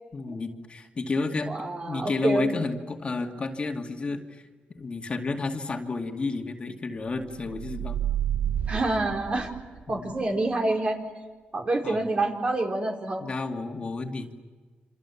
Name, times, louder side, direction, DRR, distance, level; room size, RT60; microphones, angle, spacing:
voice 1, 0.1-1.5 1.9-4.4 4.7-8.0 9.9-10.1 11.8-12.0 13.2-14.3, left 3 dB, 35° left, 3 dB, 2.4 m, -31 dB
voice 2, 1.5-2.5 8.7-9.5 9.9-11.0 11.5-13.2, right 2 dB, 40° right, 2 dB, 4.5 m, -27 dB
sound 1, 7.3-10.0, right 10 dB, 55° right, 1.0 m, -30 dB
28.0 x 26.0 x 7.2 m, 1.4 s
cardioid pair, 95°, 3 cm